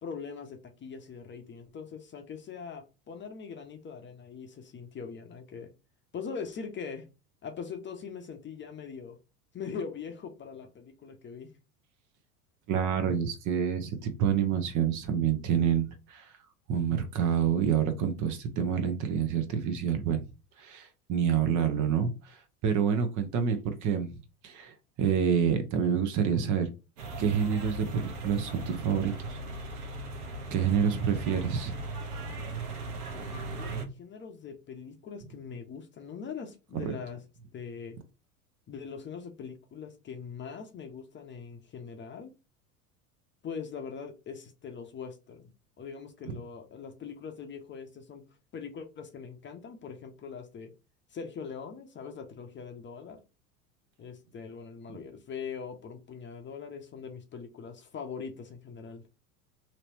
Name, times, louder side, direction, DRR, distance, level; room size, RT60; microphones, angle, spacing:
voice 1, 0.0-5.7 6.1-7.1 7.4-9.2 9.5-11.6 33.1-33.3 33.6-37.2 37.5-38.0 38.7-42.3 43.4-45.5 45.8-48.2 48.5-50.7 51.1-53.2 54.0-59.0, left 6 dB, 25° left, 0.8 m, -42 dB
voice 2, 12.7-16.3 16.7-20.2 20.6-24.1 24.4-26.7 27.2-29.4 30.5-31.8 36.8-36.9, right 7 dB, 40° right, 0.9 m, -28 dB
sound 1, 27.0-33.9, right 2 dB, 80° right, 1.0 m, -38 dB
3.0 x 3.0 x 2.8 m
hypercardioid pair, 80°, 44 cm